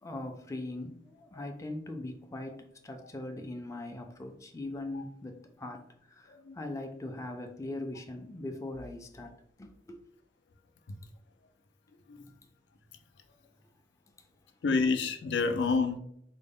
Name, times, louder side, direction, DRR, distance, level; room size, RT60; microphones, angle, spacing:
voice 1, 0.0-5.8 6.1-10.0 12.2-12.3, left 2 dB, 20° left, 0.4 m, -41 dB
voice 2, 14.6-16.0, left 4 dB, 80° left, 0.4 m, -28 dB
4.0 x 2.0 x 3.5 m
head